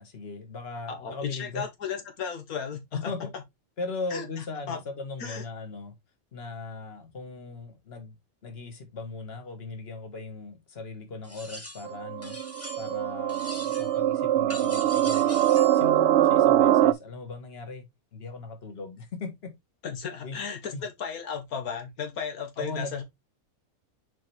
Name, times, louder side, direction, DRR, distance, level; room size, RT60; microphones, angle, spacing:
voice 1, 0.0-1.7 2.9-3.3 3.8-6.0 6.3-8.2 8.4-12.4 12.8-19.5 20.2-20.4 20.7-20.8 22.6-23.0, left 3 dB, 45° left, 1.8 m, -38 dB
voice 2, 0.9-3.1 4.1-4.8 5.2-5.4 19.8-23.0, left 6 dB, 85° left, 1.8 m, -35 dB
sound 1, 11.2-11.9 12.2-13.0 13.3-14.0 14.5-15.8, left 1 dB, 10° left, 1.3 m, -42 dB
sound 2, 11.8-16.9, right 12 dB, 65° right, 0.7 m, -23 dB
7.4 x 4.4 x 3.3 m
omnidirectional pair, 1.5 m